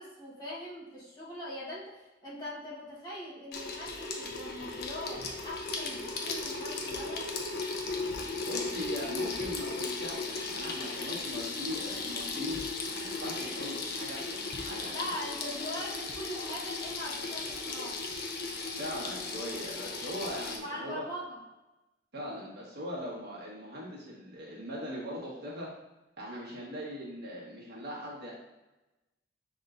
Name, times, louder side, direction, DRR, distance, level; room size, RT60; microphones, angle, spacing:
voice 1, 0.0-7.4 14.9-18.0 20.6-21.4, equal, 25° left, -8 dB, 1.4 m, -41 dB
Water tap faucet / Sink (filling or washing), 3.5-20.6, left 3 dB, 60° left, 0.6 m, -36 dB
voice 2, 8.5-12.6 13.0-15.2 18.8-21.0 22.1-25.7 26.2-28.3, equal, 60° right, -5 dB, 1.4 m, -40 dB
5.5 x 3.5 x 2.6 m, 1.0 s
head